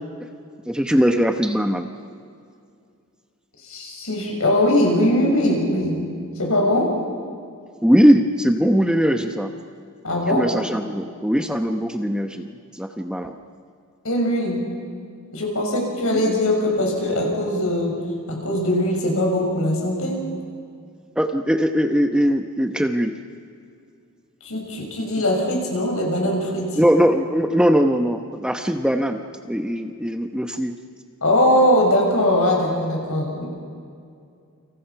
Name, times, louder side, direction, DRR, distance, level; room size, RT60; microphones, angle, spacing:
voice 1, 0.7-1.9 7.8-9.5 10.3-13.4 16.1-16.3 21.1-23.2 26.8-30.8, equal, 5° right, 5 dB, 1.0 m, -20 dB
voice 2, 3.6-6.0 6.4-6.9 10.0-10.5 14.0-14.7 15.3-18.0 18.3-20.3 24.4-26.8 31.2-33.4, left 1 dB, 65° left, 0 dB, 6.6 m, -21 dB
29.5 x 26.5 x 5.9 m, 2.3 s
head